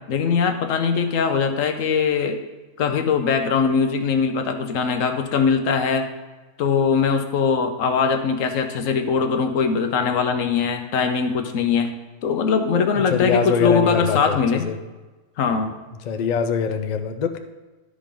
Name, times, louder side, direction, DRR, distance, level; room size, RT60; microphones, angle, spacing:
voice 1, 0.1-2.4 2.8-6.1 6.6-11.9 12.2-14.7 15.4-15.8, left 5 dB, 85° left, 7 dB, 1.2 m, -21 dB
voice 2, 13.1-14.8 16.0-17.4, left 6 dB, 55° left, 7 dB, 0.5 m, -23 dB
11.5 x 5.0 x 3.7 m, 1.2 s
omnidirectional pair, 1.3 m